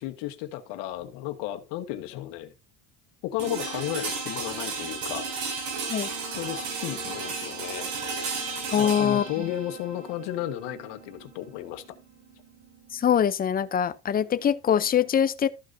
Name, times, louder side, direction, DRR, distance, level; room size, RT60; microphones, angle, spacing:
voice 1, 0.0-2.5 3.2-5.3 6.4-7.9 8.8-12.0, left 13 dB, 70° left, 1.8 m, -34 dB
sound 1, 3.4-13.3, right 4 dB, 80° right, 6.2 m, -34 dB
voice 2, 8.7-9.3 12.9-15.5, left 9 dB, 20° left, 0.5 m, -23 dB
14.0 x 6.5 x 2.7 m
cardioid pair, 150°, 43 cm